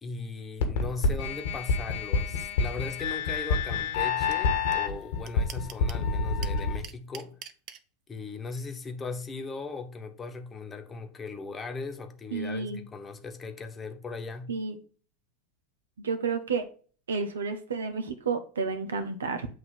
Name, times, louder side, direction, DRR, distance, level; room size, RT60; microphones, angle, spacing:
voice 1, 0.0-7.4 8.1-14.5, left 4 dB, 25° left, 1.1 m, -38 dB
sound 1, 0.6-6.8, left 4 dB, 75° left, 1.4 m, -28 dB
sound 2, 4.3-4.4 4.7-4.8 5.0-6.0 6.4-7.8, right 10 dB, 50° right, 0.7 m, -42 dB
voice 2, 12.3-12.8 14.5-14.8 16.0-16.6 17.1-19.5, right 5 dB, 85° right, 0.9 m, -31 dB
7.8 x 2.8 x 5.8 m
hypercardioid pair, 90°, 0 cm